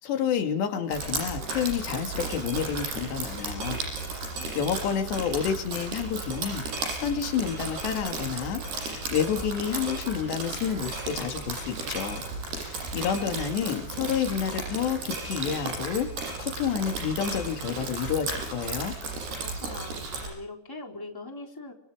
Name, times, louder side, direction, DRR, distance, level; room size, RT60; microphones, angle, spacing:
voice 1, 0.0-3.8 4.6-8.6 8.9-12.2 12.6-18.9, left 8 dB, 90° left, 5 dB, 4.6 m, -29 dB
Drip, 0.9-20.3, right 3 dB, 70° right, 10.0 m, -34 dB
voice 2, 19.4-21.7, left 2 dB, 5° left, 2 dB, 3.5 m, -42 dB
29.5 x 25.5 x 5.0 m, 0.72 s
omnidirectional pair, 4.8 m